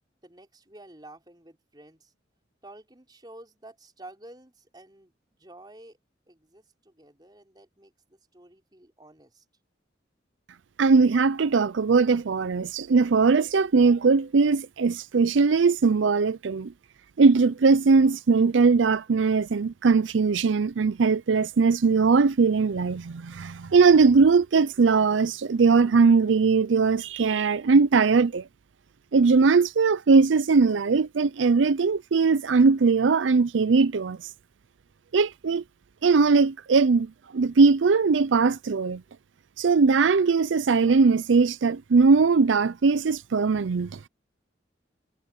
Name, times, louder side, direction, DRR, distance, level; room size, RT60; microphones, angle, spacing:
voice 1, 0.2-2.1 2.6-5.1 5.4-6.0 6.3-9.4, right 1 dB, 20° right, 4.3 m, -50 dB
voice 2, 10.8-16.7 17.2-28.4 29.1-34.2 35.1-35.6 36.0-39.0 39.6-44.0, right 4 dB, 90° right, 0.5 m, -20 dB
head